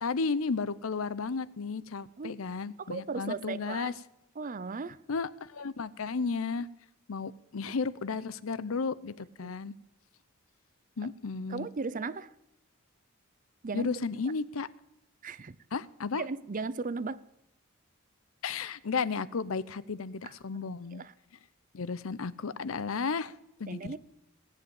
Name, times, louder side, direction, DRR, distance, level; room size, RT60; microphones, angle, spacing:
voice 1, 0.0-3.9 5.1-6.7 7.1-9.7 11.0-11.7 13.7-14.7 15.7-16.2 18.4-21.0 21.7-23.3 23.6-24.0, left 4 dB, 80° left, 0.6 m, -33 dB
voice 2, 2.8-3.9 4.4-5.0 9.4-9.5 11.5-12.3 13.6-13.9 15.2-15.6 16.2-17.2 20.2-20.3 20.9-21.1 23.7-24.0, right 4 dB, 40° right, 0.5 m, -36 dB
17.0 x 7.9 x 8.8 m
head